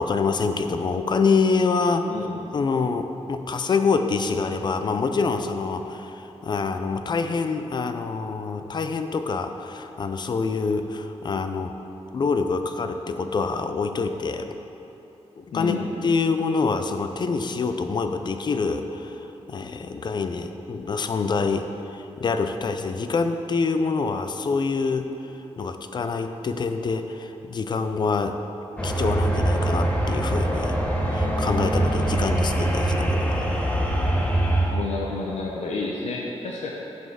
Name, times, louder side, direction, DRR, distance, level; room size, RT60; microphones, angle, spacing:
voice 1, 0.0-2.1 2.5-11.8 12.1-14.5 15.4-15.8 16.0-25.1 25.6-28.4 28.8-30.8 31.1-33.5, left 4 dB, 40° left, 8 dB, 0.5 m, -26 dB
voice 2, 2.1-2.4 15.5-15.9 34.7-36.7, left 3 dB, 85° left, -2 dB, 0.8 m, -30 dB
sound 1, 28.8-34.7, right 1 dB, 10° left, 0.9 m, -23 dB
7.8 x 5.5 x 6.4 m, 3.0 s
wide cardioid pair, 150°, 11 cm